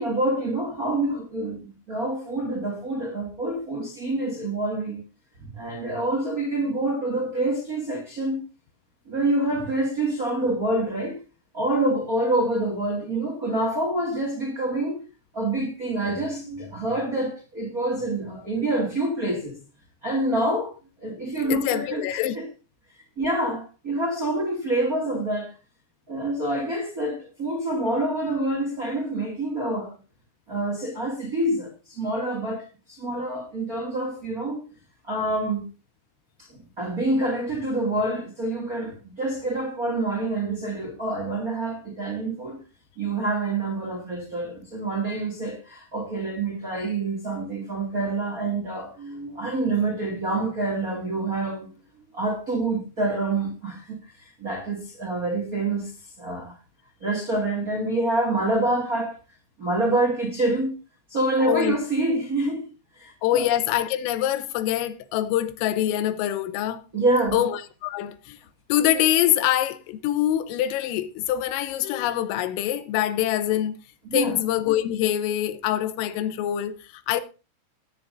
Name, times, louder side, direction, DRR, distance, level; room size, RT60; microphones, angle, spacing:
voice 1, 0.0-5.0 5.4-8.4 9.1-11.2 11.5-15.0 15.3-19.6 20.0-22.0 22.3-22.4 23.2-25.5 26.1-29.9 30.5-34.6 35.1-35.7 36.4-42.6 43.0-51.7 52.1-55.9 56.2-56.6 57.0-59.2 59.6-60.7 61.1-62.7 62.9-63.4 66.9-67.4 74.1-74.4, right 2 dB, 45° right, 1.1 m, -27 dB
voice 2, 21.5-22.4 61.5-61.8 63.2-66.8 67.3-68.4 68.7-73.8 74.1-77.2, left 12 dB, 85° left, 3.5 m, -24 dB
17.0 x 9.6 x 2.7 m
omnidirectional pair, 5.8 m